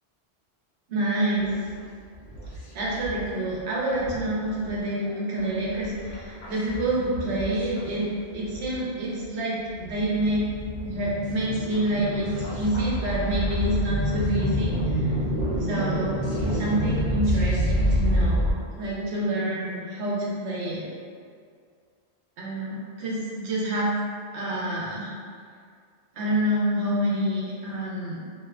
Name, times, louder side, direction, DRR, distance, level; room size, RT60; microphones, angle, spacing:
voice 1, 0.9-1.5 2.7-10.5 10.8-12.3 12.5-15.1 15.6-18.5 18.8-20.9 22.4-23.9 24.3-25.1 26.1-28.2, right 1 dB, 85° right, -5 dB, 0.9 m, -27 dB
sound 1, 1.3-1.7 2.1-3.3 3.6-3.7 3.9-8.8 9.2-9.3 9.7-18.5, equal, 75° left, 0.8 m, -28 dB
2.6 x 2.1 x 2.4 m, 2.1 s
omnidirectional pair, 1.1 m